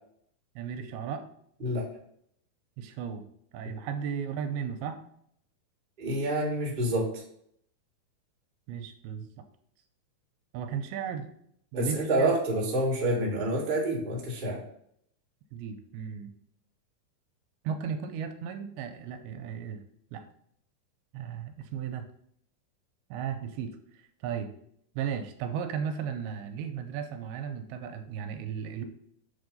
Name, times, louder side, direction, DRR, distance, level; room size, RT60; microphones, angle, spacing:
voice 1, 0.6-1.3 2.8-3.3 3.5-5.0 8.7-9.3 10.5-11.3 11.7-12.4 15.5-16.3 17.6-19.8 20.1-20.2 21.1-22.1 23.1-23.8 24.2-24.5 25.0-28.9, right 7 dB, 85° right, 7 dB, 2.4 m, -35 dB
voice 2, 6.0-7.1 11.7-14.6, right 1 dB, 40° right, -4 dB, 0.6 m, -27 dB
7.2 x 3.5 x 5.3 m, 0.68 s
omnidirectional pair, 4.5 m